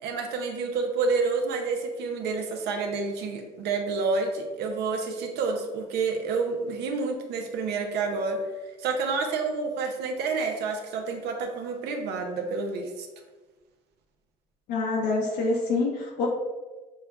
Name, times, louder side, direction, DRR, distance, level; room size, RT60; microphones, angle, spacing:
voice 1, 0.0-8.4 8.8-13.1, right 4 dB, 80° right, 3 dB, 0.7 m, -29 dB
voice 2, 14.7-16.3, left 3 dB, 80° left, -3 dB, 0.7 m, -26 dB
6.5 x 2.3 x 2.3 m, 1.2 s
cardioid pair, 110°, 17 cm